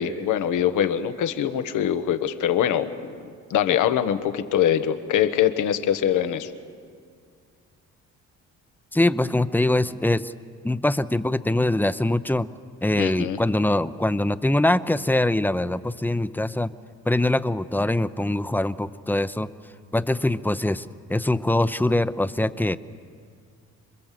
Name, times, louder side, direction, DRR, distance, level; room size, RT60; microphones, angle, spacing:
voice 1, 0.0-2.9 3.5-6.5 13.0-13.4, left 10 dB, 85° left, 9 dB, 1.3 m, -23 dB
voice 2, 8.9-10.3 10.6-12.5 12.8-16.7 17.1-19.5 19.9-22.8, left 1 dB, 5° left, 13 dB, 0.7 m, -23 dB
27.0 x 22.0 x 7.6 m, 2.1 s
cardioid pair, 90°, 30 cm